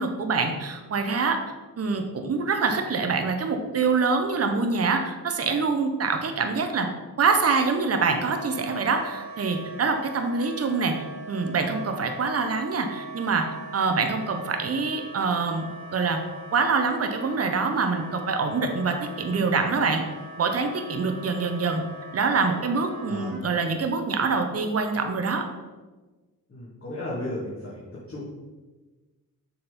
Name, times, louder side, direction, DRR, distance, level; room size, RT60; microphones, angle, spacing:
voice 1, 0.0-1.4 1.8-6.9 7.2-10.9 11.3-13.5 13.7-15.7 15.9-16.2 16.5-20.0 20.4-21.8 22.1-25.4, right 4 dB, 40° right, 5 dB, 0.9 m, -25 dB
Wind instrument woodwind instrument, 8.1-23.4, right 3 dB, 65° right, 1.7 m, -41 dB
voice 2, 23.1-23.4 26.5-27.8 28.1-28.3, left 1 dB, 35° left, -8 dB, 2.2 m, -34 dB
7.0 x 3.9 x 5.2 m, 1.3 s
cardioid pair, 80°, 36 cm